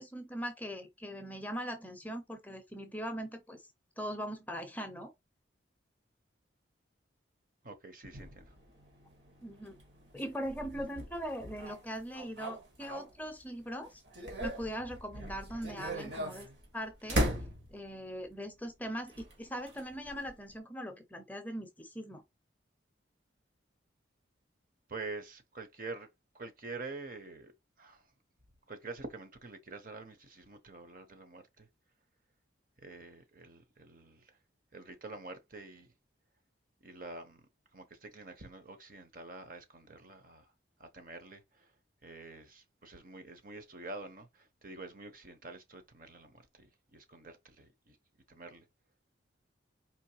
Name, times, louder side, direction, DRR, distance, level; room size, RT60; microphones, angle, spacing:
voice 1, 0.0-3.6 4.0-5.1 9.4-9.8 10.1-14.0 14.4-16.5 16.7-17.2 17.7-22.2, equal, 10° left, 0.6 m, -40 dB
voice 2, 7.6-8.5 24.9-26.1 26.3-27.5 27.8-28.1 28.7-31.7 32.8-34.4 34.7-35.9 36.8-40.5 40.8-41.7 42.0-48.0 48.3-48.7, right 3 dB, 45° right, 1.0 m, -47 dB
sound 1, 8.1-13.5 13.9-18.1 19.1-20.5, equal, 65° right, 1.6 m, -39 dB
4.5 x 3.1 x 3.0 m
head